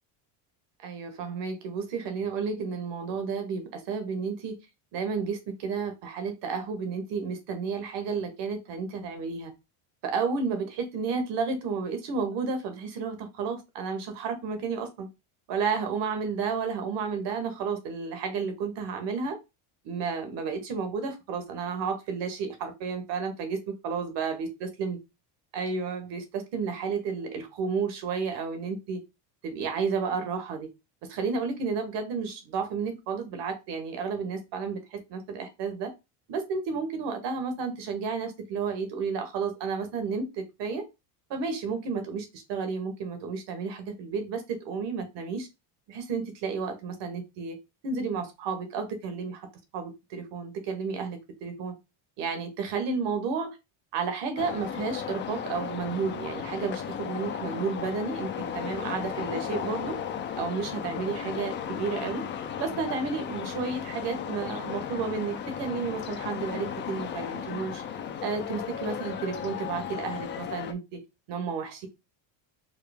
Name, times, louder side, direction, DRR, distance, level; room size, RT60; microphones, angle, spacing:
voice 1, 0.8-4.6 4.9-9.5 10.0-15.1 15.5-19.4 19.8-25.0 25.5-29.0 29.4-30.7 31.1-35.9 36.3-40.8 41.3-45.5 45.9-49.5 49.7-51.7 52.2-53.6 53.9-60.0 60.3-62.2 62.6-67.8 68.2-71.0 71.3-71.9, right 5 dB, 60° right, 1.4 m, -32 dB
sound 1, 54.4-70.7, left 8 dB, 25° left, 0.3 m, -35 dB
4.8 x 2.0 x 3.4 m
cardioid pair, 125°, 47 cm